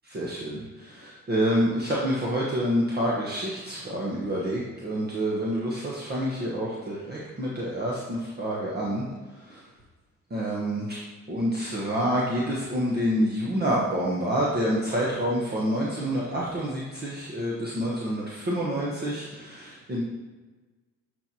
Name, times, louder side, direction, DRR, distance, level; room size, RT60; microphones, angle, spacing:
voice 1, 0.1-9.0 9.5-9.6 10.3-11.0 11.3-20.0, equal, 35° right, -5 dB, 1.2 m, -28 dB
9.4 x 4.4 x 2.9 m, 1.3 s
cardioid pair, 90°, 30 cm